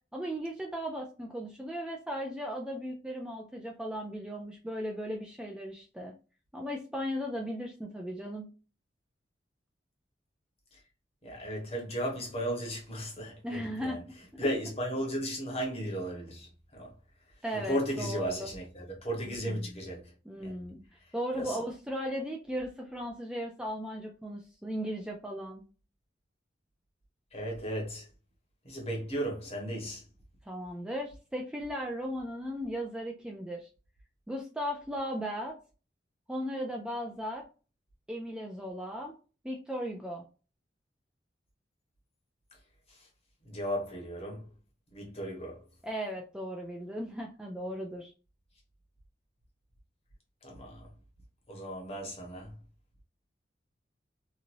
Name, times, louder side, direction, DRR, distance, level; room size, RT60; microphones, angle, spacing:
voice 1, 0.1-6.1 6.5-8.5 13.4-14.0 17.4-18.5 19.3-19.8 20.3-20.8 21.1-25.6 30.5-33.7 34.3-35.6 36.3-37.4 38.1-39.1 39.4-40.2 45.8-48.1, equal, 5° right, 0.4 m, -37 dB
voice 2, 11.2-14.0 14.4-16.9 17.5-20.1 20.4-20.5 21.4-21.6 27.3-28.1 28.6-30.0 42.9-43.1 43.4-44.5 44.9-45.6 50.4-50.9 51.5-52.5, equal, 35° left, 1.2 m, -35 dB
3.0 x 2.6 x 2.6 m
head